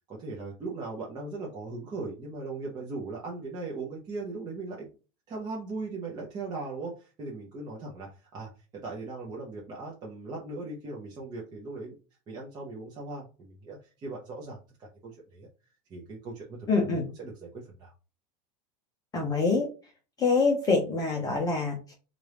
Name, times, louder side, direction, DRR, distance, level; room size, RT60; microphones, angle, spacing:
voice 1, 0.0-4.9 5.3-12.0 12.3-15.5 15.9-17.5 17.8-17.9, right 3 dB, 20° right, -3 dB, 0.7 m, -39 dB
voice 2, 16.7-17.1 19.1-19.7 20.2-21.9, left 4 dB, 20° left, 0 dB, 0.7 m, -25 dB
4.2 x 2.5 x 3.4 m, 0.34 s
supercardioid pair, 160°, 21 cm